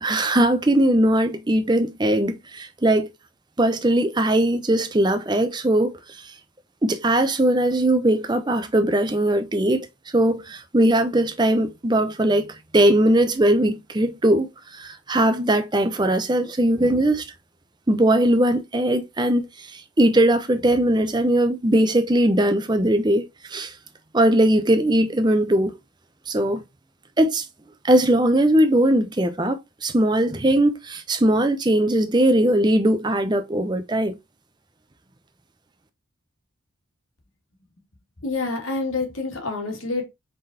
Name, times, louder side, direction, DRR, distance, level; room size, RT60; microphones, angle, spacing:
voice 1, 0.0-3.1 3.6-6.0 6.8-9.9 10.1-12.5 12.7-17.3 17.9-23.7 24.1-25.7 26.3-26.6 27.2-27.4 27.8-34.2, right 1 dB, 20° right, 0.6 m, -20 dB
voice 2, 38.2-40.1, left 3 dB, 75° left, 2.0 m, -27 dB
5.0 x 3.9 x 2.7 m
head